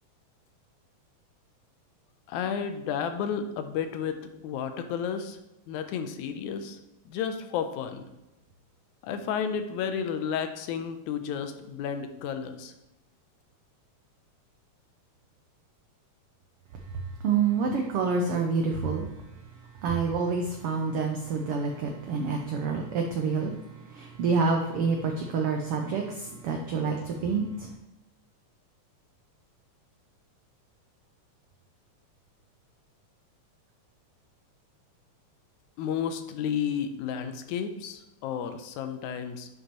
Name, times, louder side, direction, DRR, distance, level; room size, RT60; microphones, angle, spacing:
voice 1, 2.3-5.4 5.7-6.8 7.1-8.1 9.0-12.7 35.8-39.5, left 7 dB, 85° left, 8 dB, 2.0 m, -32 dB
voice 2, 17.2-19.1 19.8-23.5 23.9-27.7, right 5 dB, 90° right, 3 dB, 1.2 m, -27 dB
10.0 x 5.3 x 3.0 m, 0.94 s
omnidirectional pair, 3.4 m